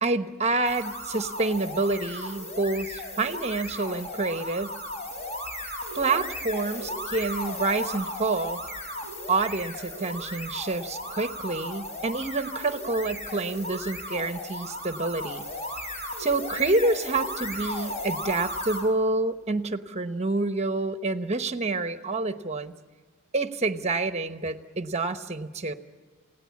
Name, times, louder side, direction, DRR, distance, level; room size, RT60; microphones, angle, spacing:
voice 1, 0.0-4.8 5.9-8.6 9.3-15.4 16.2-22.7 23.3-25.7, right 3 dB, 30° right, 9 dB, 1.0 m, -28 dB
sound 1, 0.6-18.9, left 1 dB, 35° left, 4.7 m, -36 dB
28.5 x 17.5 x 8.5 m, 1.4 s
head